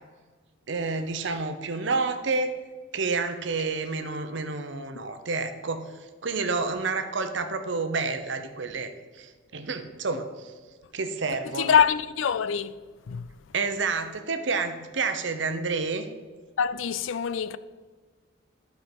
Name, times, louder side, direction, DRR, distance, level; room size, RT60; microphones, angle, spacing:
voice 1, 0.7-2.5 2.9-5.9 6.2-8.9 9.2-10.3 10.9-11.8 13.5-16.1, right 4 dB, 65° right, 0.7 m, -29 dB
voice 2, 11.5-12.8 13.1-13.3 16.6-17.6, left 7 dB, 75° left, 0.4 m, -24 dB
12.0 x 4.6 x 5.3 m
head